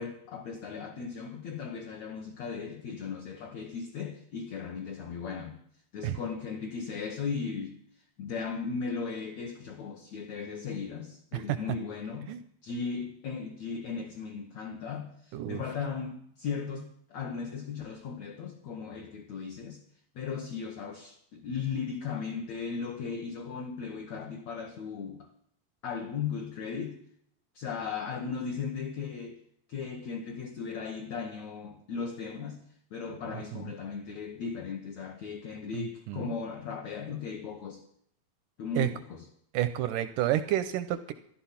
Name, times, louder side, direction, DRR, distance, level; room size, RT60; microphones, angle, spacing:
voice 1, 0.0-5.6 5.9-7.8 8.2-12.4 12.6-19.8 20.2-25.3 25.8-27.0 27.6-29.4 29.7-32.6 32.9-37.8 38.6-39.2, left 5 dB, 60° left, 2 dB, 2.0 m, -37 dB
voice 2, 35.7-36.3 38.8-38.9 39.5-41.1, right 13 dB, 80° right, 12 dB, 1.9 m, -30 dB
14.5 x 11.5 x 5.8 m, 0.68 s
omnidirectional pair, 4.3 m